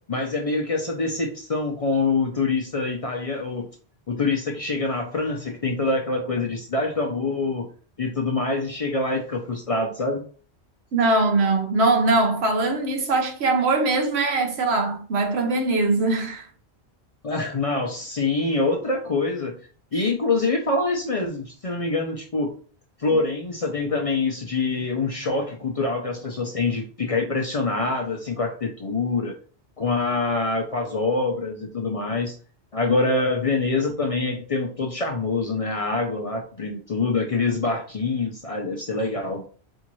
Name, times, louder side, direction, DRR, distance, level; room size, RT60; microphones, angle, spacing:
voice 1, 0.1-3.7 4.1-7.7 8.0-10.2 17.2-19.6 19.9-22.5 23.0-29.3 29.8-32.4 32.7-39.4, left 3 dB, 45° left, 0.5 m, -25 dB
voice 2, 10.9-16.5 23.1-23.2, right 3 dB, 75° right, 1.0 m, -21 dB
4.4 x 2.5 x 3.0 m
omnidirectional pair, 1.1 m